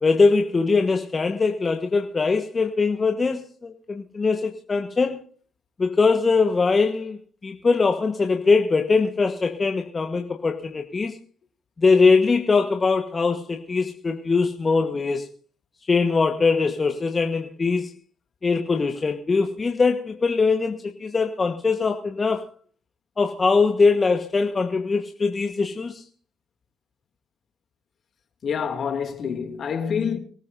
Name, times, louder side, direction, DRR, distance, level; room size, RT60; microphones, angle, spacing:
voice 1, 0.0-5.2 5.8-11.2 11.8-15.3 15.9-17.9 18.4-22.4 23.2-26.1, left 4 dB, 30° left, 1.3 m, -22 dB
voice 2, 28.4-30.2, left 7 dB, 55° left, 2.7 m, -27 dB
24.5 x 13.5 x 2.7 m
supercardioid pair, 70°, 0 cm